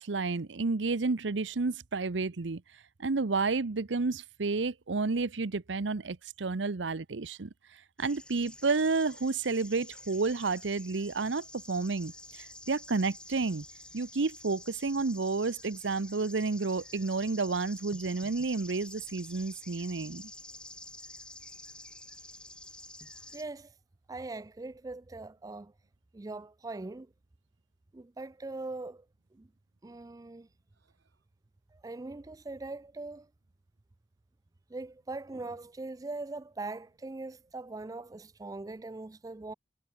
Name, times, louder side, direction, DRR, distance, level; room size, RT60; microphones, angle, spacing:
voice 1, 0.0-2.6 3.0-7.5 8.0-13.6 13.9-20.3, right 3 dB, 85° right, 0.8 m, -31 dB
sound 1, 8.0-23.4, left 1 dB, 5° left, 3.0 m, -49 dB
voice 2, 23.3-23.7 24.1-25.7 26.1-27.1 27.9-29.0 29.3-29.5 29.8-30.5 31.7-33.3 34.7-39.5, right 2 dB, 20° right, 0.4 m, -41 dB
head